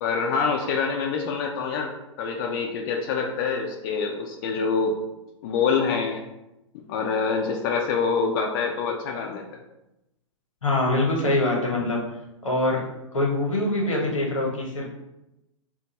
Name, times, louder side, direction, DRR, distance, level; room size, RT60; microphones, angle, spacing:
voice 1, 0.0-1.9 2.2-5.0 5.4-6.2 6.9-9.6, left 5 dB, 45° left, 1 dB, 0.4 m, -26 dB
voice 2, 10.6-12.0 12.4-12.8 13.1-14.9, left 2 dB, 85° left, -1 dB, 1.0 m, -24 dB
2.5 x 2.3 x 4.0 m, 0.92 s
figure-of-eight pair, 110°, 16 cm